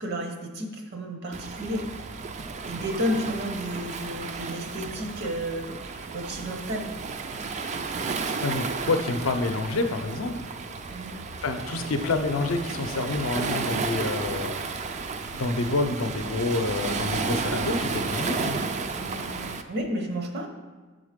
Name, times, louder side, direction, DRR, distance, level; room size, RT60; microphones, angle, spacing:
voice 1, 0.0-1.9 2.7-6.9 10.9-11.1 19.0-20.5, equal, 55° right, 3 dB, 0.8 m, -32 dB
Waves surf, 1.3-19.6, right 4 dB, 35° right, 0.3 m, -33 dB
voice 2, 8.4-10.5 11.4-14.7 15.3-18.7, left 3 dB, 75° left, 6 dB, 0.5 m, -28 dB
6.3 x 3.9 x 5.1 m, 1.3 s
head